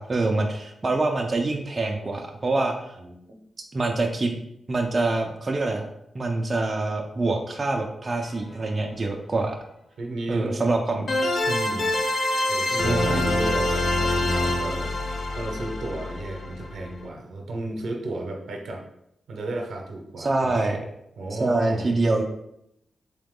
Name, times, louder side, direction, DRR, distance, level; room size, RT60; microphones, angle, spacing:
voice 1, 0.0-3.0 3.7-4.4 4.7-5.9 6.1-9.6 10.3-11.1 12.7-13.2 20.2-20.9 21.3-22.2, right 2 dB, 40° right, 2 dB, 0.5 m, -25 dB
voice 2, 3.0-3.3 10.0-10.6 11.5-11.9 12.5-18.8 19.3-20.6 21.2-21.9, right 2 dB, 80° right, 1 dB, 0.8 m, -33 dB
sound 1, 8.2-8.3 11.1-17.0, left 1 dB, 60° left, 0.5 m, -25 dB
3.8 x 2.9 x 3.6 m, 0.79 s
cardioid pair, 65°, 0 cm